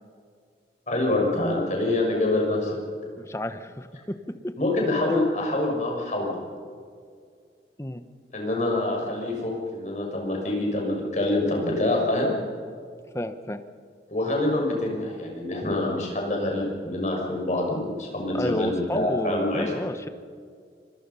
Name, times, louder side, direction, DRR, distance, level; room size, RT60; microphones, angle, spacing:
voice 1, 0.9-2.8 4.6-6.4 8.3-12.3 14.1-19.7, left 2 dB, 40° left, 0 dB, 6.1 m, -26 dB
voice 2, 3.2-3.9 7.8-8.0 13.1-13.6 18.3-20.1, left 1 dB, 15° left, 10 dB, 1.0 m, -30 dB
26.0 x 21.5 x 5.7 m, 2.1 s
head